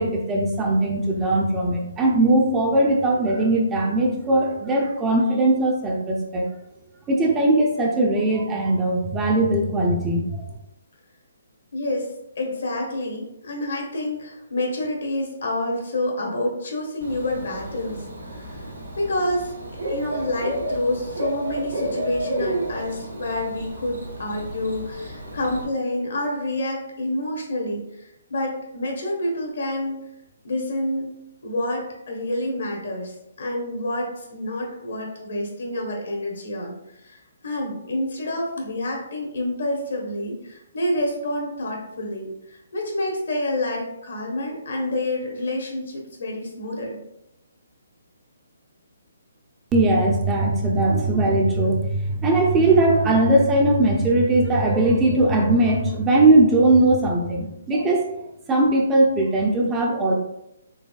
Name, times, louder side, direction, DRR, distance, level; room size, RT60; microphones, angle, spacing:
voice 1, 0.0-6.5 7.1-10.4 49.7-58.1 58.5-60.1, right 2 dB, 15° right, -1 dB, 0.6 m, -19 dB
voice 2, 11.7-12.1 12.4-18.7 19.0-19.5 19.9-30.1 30.4-47.0, left 1 dB, 65° left, 0 dB, 1.2 m, -28 dB
Bird / Cricket, 17.0-25.6, right 1 dB, 80° right, 1.0 m, -32 dB
3.9 x 3.3 x 2.4 m, 0.84 s
figure-of-eight pair, 140°, 0 cm